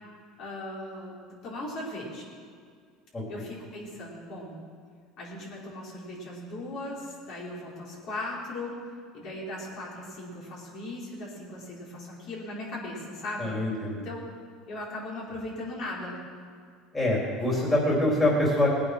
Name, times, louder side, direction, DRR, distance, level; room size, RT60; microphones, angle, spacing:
voice 1, 0.4-2.3 3.3-4.6 5.2-8.8 9.1-13.6 13.9-14.3 14.7-16.2, left 1 dB, 55° left, -5 dB, 4.7 m, -38 dB
voice 2, 13.4-14.0 16.9-18.7, left 1 dB, 15° left, -3 dB, 3.7 m, -24 dB
18.5 x 8.7 x 6.2 m, 2.1 s
supercardioid pair, 115°, 0 cm